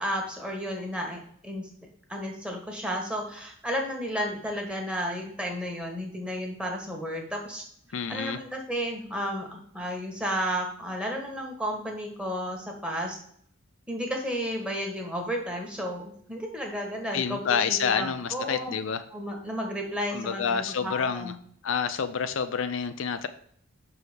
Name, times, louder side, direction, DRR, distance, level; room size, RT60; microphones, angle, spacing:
voice 1, 0.0-1.7 2.1-7.6 8.1-13.2 13.9-18.8 19.1-21.3, equal, 5° right, 1 dB, 1.3 m, -32 dB
voice 2, 7.9-8.4 17.1-19.0 20.1-21.3 21.6-23.3, left 6 dB, 65° left, 10 dB, 0.5 m, -28 dB
6.3 x 4.8 x 5.0 m, 0.62 s
head